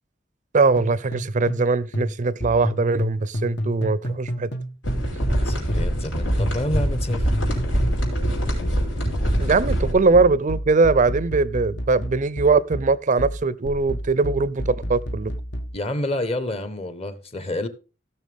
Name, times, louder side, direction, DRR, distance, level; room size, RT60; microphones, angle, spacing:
voice 1, 0.5-4.5 9.4-15.3, right 3 dB, 40° right, 0.5 m, -21 dB
sound 1, 0.8-5.4 5.7-15.8, equal, 65° left, 1.2 m, -30 dB
sound 2, 4.8-9.9, equal, 90° left, 4.7 m, -24 dB
voice 2, 5.4-7.3 15.7-17.7, left 1 dB, 35° left, 1.1 m, -28 dB
16.5 x 6.9 x 3.5 m
head